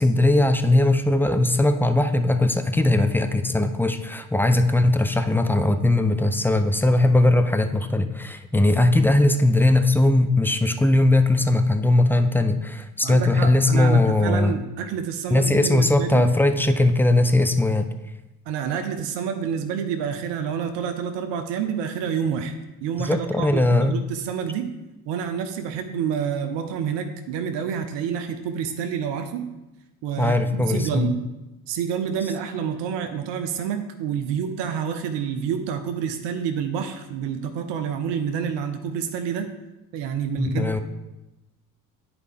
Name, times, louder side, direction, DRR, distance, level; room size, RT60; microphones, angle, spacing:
voice 1, 0.0-14.6 15.3-17.9 23.0-23.9 30.2-31.2 40.4-40.8, left 2 dB, 5° left, 8 dB, 0.4 m, -19 dB
voice 2, 13.0-16.3 18.5-22.5 22.8-24.7 25.1-29.5 30.0-31.2 31.7-39.5 39.9-40.8, right 7 dB, 60° right, 7 dB, 0.8 m, -28 dB
9.8 x 4.7 x 3.4 m, 1.0 s
hypercardioid pair, 55°, 47 cm